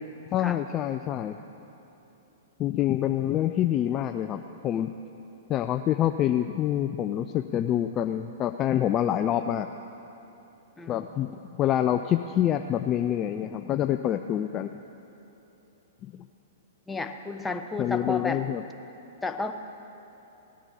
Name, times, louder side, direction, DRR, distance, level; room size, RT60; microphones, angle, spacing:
voice 1, 0.3-1.4 2.6-4.9 5.5-9.7 10.9-14.7 16.0-16.2 17.8-18.6, left 11 dB, 30° left, 7 dB, 0.4 m, -26 dB
voice 2, 10.8-11.2 16.9-18.5 19.2-19.5, left 3 dB, 10° left, 6 dB, 0.8 m, -32 dB
18.5 x 10.0 x 4.2 m, 3.0 s
hypercardioid pair, 110°, 0 cm